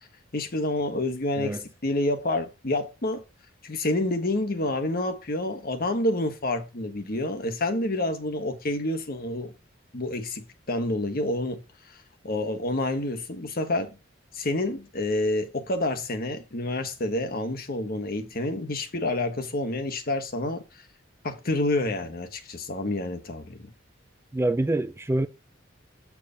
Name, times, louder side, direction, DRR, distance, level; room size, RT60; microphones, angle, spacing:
voice 1, 0.3-3.2 3.6-9.5 9.9-11.6 12.2-14.0 14.3-20.6 21.2-23.7, left 1 dB, 50° left, 1.3 m, -28 dB
voice 2, 24.3-25.3, right 2 dB, 15° right, 0.4 m, -25 dB
8.3 x 4.8 x 5.1 m
head